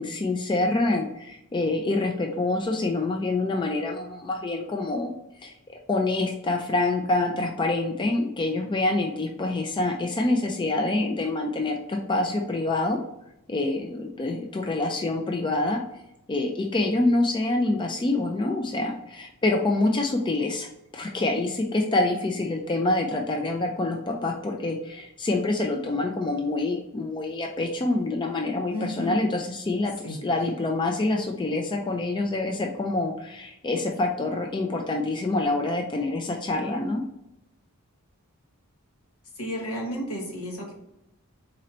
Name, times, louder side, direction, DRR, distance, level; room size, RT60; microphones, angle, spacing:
voice 1, 0.0-5.1 5.4-5.5 5.9-13.0 13.5-15.8 16.3-37.0, left 2 dB, 20° left, 2 dB, 0.3 m, -26 dB
voice 2, 28.7-29.2 30.0-30.5 39.3-40.7, equal, 75° left, 0 dB, 1.2 m, -33 dB
4.1 x 2.6 x 4.2 m, 0.85 s
head